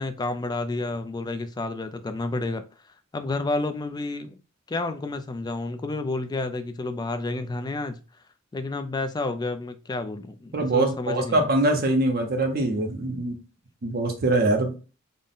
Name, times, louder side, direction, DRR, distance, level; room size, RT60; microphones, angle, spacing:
voice 1, 0.0-2.6 3.1-4.4 4.7-8.0 8.5-11.5, left 2 dB, 20° left, 0.3 m, -30 dB
voice 2, 10.5-13.4 13.8-14.8, right 2 dB, 45° right, 0.6 m, -23 dB
3.8 x 2.1 x 3.6 m
head